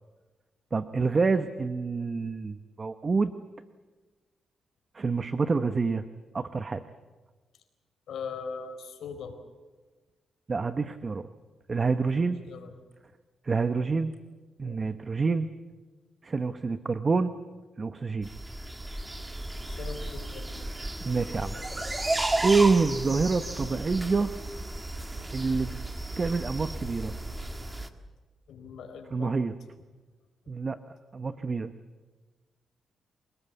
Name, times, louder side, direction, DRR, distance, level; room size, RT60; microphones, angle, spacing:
voice 1, 0.7-3.3 4.9-6.0 6.3-6.8 10.5-11.3 11.7-12.4 13.4-14.1 14.6-15.5 16.2-17.3 17.8-18.3 21.0-21.6 22.4-24.3 25.3-25.8 26.2-27.1 29.1-29.5 30.5-30.8 31.1-31.7, right 4 dB, 30° right, 11 dB, 1.0 m, -27 dB
voice 2, 8.1-9.3 12.1-12.7 14.6-14.9 19.7-20.7 28.5-29.3, left 5 dB, 80° left, 6 dB, 4.4 m, -40 dB
sound 1, 18.2-27.9, right 1 dB, 15° right, 1.9 m, -34 dB
27.0 x 19.0 x 8.3 m, 1.3 s
cardioid pair, 110°, 0 cm